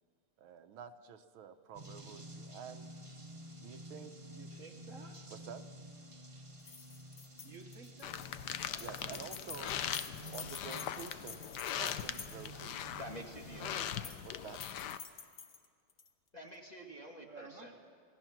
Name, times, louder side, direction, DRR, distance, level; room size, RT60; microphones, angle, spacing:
voice 1, 0.4-2.9 3.6-4.3 5.3-5.7 8.8-9.8 10.3-11.4 11.7-12.8 14.2-14.6, right 8 dB, 85° right, 9 dB, 1.7 m, -49 dB
sound 1, 1.7-13.9, right 1 dB, 20° right, 1.0 m, -51 dB
voice 2, 4.3-5.2 7.4-8.3 17.2-17.8, right 4 dB, 45° right, 4 dB, 1.3 m, -53 dB
sound 2, 6.6-12.7 13.8-14.3 14.5-16.1, left 6 dB, 45° left, 0.7 m, -49 dB
sound 3, 8.0-15.0, left 10 dB, 65° left, 1.2 m, -41 dB
voice 3, 13.0-14.2 16.3-17.8, equal, 20° left, 1 dB, 1.6 m, -48 dB
27.0 x 17.0 x 6.0 m, 2.1 s
omnidirectional pair, 2.2 m